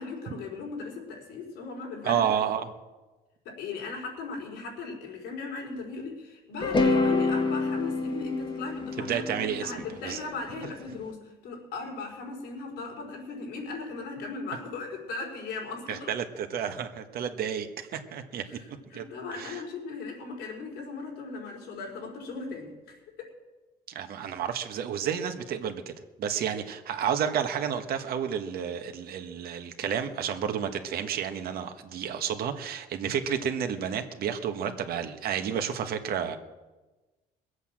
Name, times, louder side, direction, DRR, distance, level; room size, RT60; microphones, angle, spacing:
voice 1, 0.0-2.4 3.4-16.1 18.5-23.0, left 4 dB, 85° left, -1 dB, 5.1 m, -38 dB
voice 2, 2.0-2.7 9.1-9.7 10.0-10.2 15.9-18.6 18.9-19.1 19.3-19.6 23.9-25.9 26.2-36.4, right 8 dB, 65° right, 7 dB, 1.5 m, -31 dB
sound 1, 6.6-10.8, left 3 dB, 30° left, 1.5 m, -27 dB
21.0 x 8.2 x 7.6 m, 1.2 s
cardioid pair, 110°, 17 cm